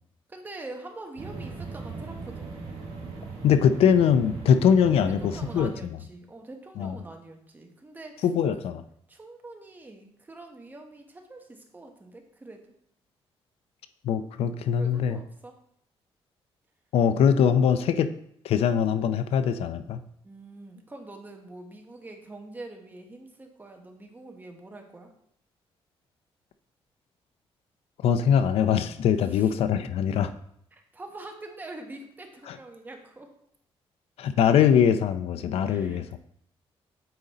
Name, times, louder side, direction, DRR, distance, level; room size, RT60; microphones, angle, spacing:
voice 1, 0.3-2.5 5.1-8.3 9.1-12.6 14.8-15.5 20.2-25.1 29.2-29.5 30.7-33.3 35.7-36.2, right 2 dB, 20° right, 3 dB, 1.1 m, -44 dB
sound 1, 1.2-5.7, right 4 dB, 70° right, 1.8 m, -38 dB
voice 2, 3.4-5.7 6.8-7.0 8.2-8.8 14.0-15.2 16.9-18.1 18.4-20.0 28.0-30.3 32.5-32.6 34.2-36.2, left 8 dB, 80° left, 11 dB, 0.5 m, -22 dB
8.9 x 4.0 x 4.1 m, 0.69 s
cardioid pair, 140°, 10 cm